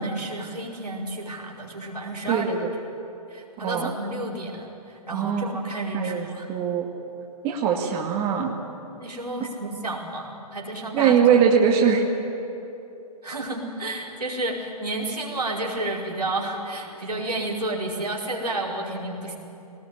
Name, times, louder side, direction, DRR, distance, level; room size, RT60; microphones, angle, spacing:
voice 1, 0.0-2.5 3.3-6.5 9.0-11.2 13.2-19.4, right 2 dB, 90° right, -3 dB, 5.1 m, -31 dB
voice 2, 2.3-2.7 3.6-3.9 5.1-5.5 5.9-6.9 7.4-8.5 10.9-12.1, right 7 dB, 25° right, 0 dB, 2.3 m, -21 dB
23.0 x 19.0 x 9.8 m, 2.9 s
figure-of-eight pair, 125°, 20 cm